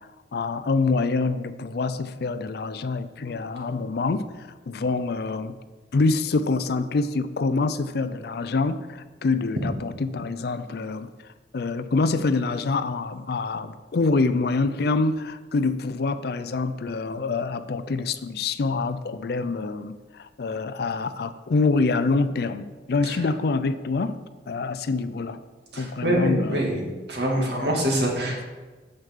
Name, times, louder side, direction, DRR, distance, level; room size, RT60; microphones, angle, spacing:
voice 1, 0.3-4.2 4.7-5.6 5.9-11.1 11.5-24.2 24.5-25.4 25.8-26.6 27.4-28.0 28.3-28.4, left 3 dB, 60° left, 12 dB, 0.4 m, -26 dB
voice 2, 25.7-28.5, right 1 dB, 65° right, -1 dB, 2.0 m, -25 dB
8.9 x 8.0 x 3.6 m, 1.3 s
head